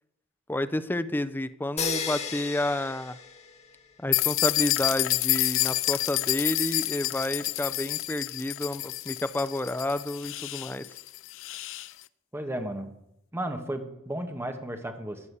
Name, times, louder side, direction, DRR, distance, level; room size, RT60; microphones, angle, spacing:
voice 1, 0.5-3.2 4.0-10.8, left 1 dB, 10° left, 14 dB, 0.6 m, -30 dB
sound 1, 1.8-3.9, left 5 dB, 35° left, 1.8 m, -34 dB
sound 2, 4.1-11.9, left 16 dB, 65° left, 0.5 m, -29 dB
voice 2, 12.3-12.9 13.3-15.3, right 1 dB, 10° right, 6 dB, 1.6 m, -34 dB
14.5 x 7.0 x 8.3 m, 0.82 s
head